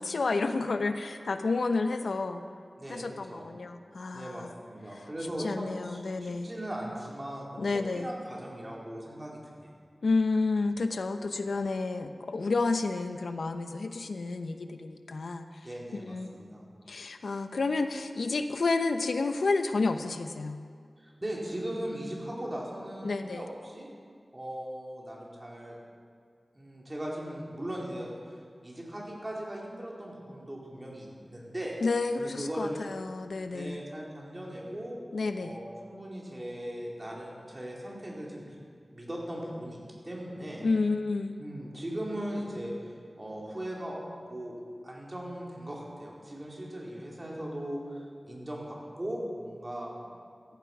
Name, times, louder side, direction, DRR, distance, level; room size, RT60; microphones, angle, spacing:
voice 1, 0.0-2.4 2.9-4.5 5.4-6.5 7.6-8.1 10.0-15.6 15.9-16.4 16.9-20.6 23.0-23.5 31.8-33.8 35.1-35.6 40.6-41.4, left 3 dB, 85° left, 8 dB, 0.9 m, -30 dB
voice 2, 2.8-3.5 4.1-9.7 15.6-16.6 21.0-23.9 24.3-25.8 26.5-31.8 32.2-32.8 33.5-35.0 35.4-38.5 38.9-40.6 41.4-44.0 44.3-44.6 44.8-50.1, right 1 dB, 25° right, -3 dB, 4.4 m, -39 dB
16.5 x 14.0 x 6.1 m, 2.1 s
wide cardioid pair, 80°, 0 cm